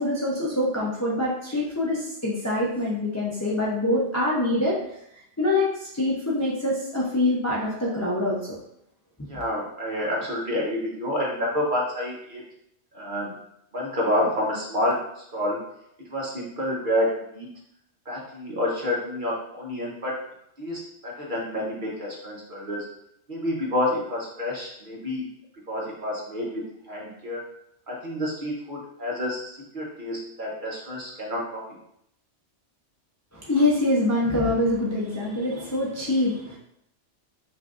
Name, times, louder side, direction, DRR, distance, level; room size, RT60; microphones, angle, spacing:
voice 1, 0.0-4.8 5.4-8.4 33.3-36.6, left 1 dB, 20° left, -5 dB, 0.5 m, -25 dB
voice 2, 9.3-12.4 12.9-13.3 13.7-15.6 16.1-17.5 18.1-20.1 20.6-22.8 23.3-25.2 25.7-27.4 27.9-31.4, left 1 dB, 45° right, -4 dB, 1.0 m, -28 dB
5.7 x 2.7 x 2.5 m, 0.76 s
omnidirectional pair, 1.3 m